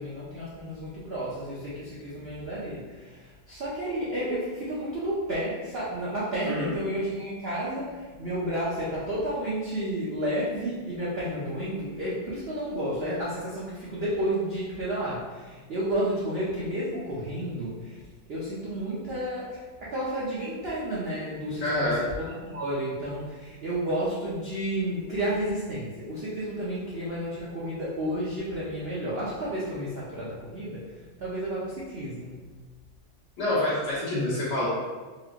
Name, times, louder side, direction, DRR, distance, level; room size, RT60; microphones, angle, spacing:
voice 1, 0.0-18.0 18.3-32.4, right 1 dB, 70° right, -7 dB, 0.5 m, -31 dB
voice 2, 21.6-22.0 33.4-34.7, left 1 dB, 65° left, -9 dB, 2.0 m, -27 dB
4.6 x 2.8 x 2.5 m, 1.4 s
omnidirectional pair, 2.0 m